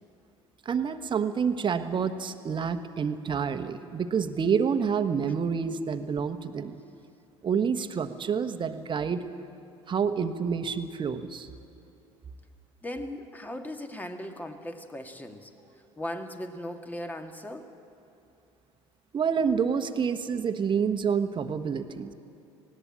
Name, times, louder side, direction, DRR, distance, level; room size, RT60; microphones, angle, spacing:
voice 1, 0.6-6.7 7.4-9.2 9.9-11.5 19.1-22.1, right 6 dB, 35° right, 9 dB, 1.2 m, -28 dB
voice 2, 12.8-15.5 16.0-17.7, left 1 dB, 10° left, 5 dB, 1.9 m, -38 dB
19.5 x 17.0 x 8.6 m, 2.7 s
hypercardioid pair, 65°, 14 cm